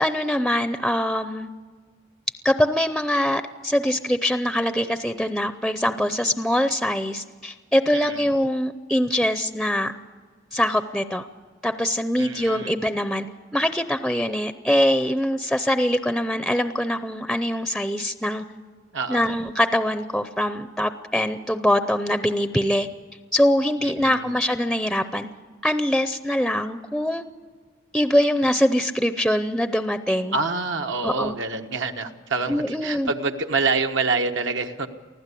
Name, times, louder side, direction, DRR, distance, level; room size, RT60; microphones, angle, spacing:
voice 1, 0.0-1.5 2.4-9.9 10.5-11.3 11.6-13.3 13.5-18.4 19.1-22.9 23.3-25.3 25.6-27.2 27.9-30.4 31.0-31.4 32.5-33.1, equal, ahead, 10 dB, 0.6 m, -23 dB
voice 2, 7.9-8.2 12.2-12.7 18.9-19.3 23.8-24.3 30.3-34.9, right 3 dB, 70° right, 5 dB, 1.3 m, -27 dB
24.0 x 15.5 x 8.4 m, 1.5 s
head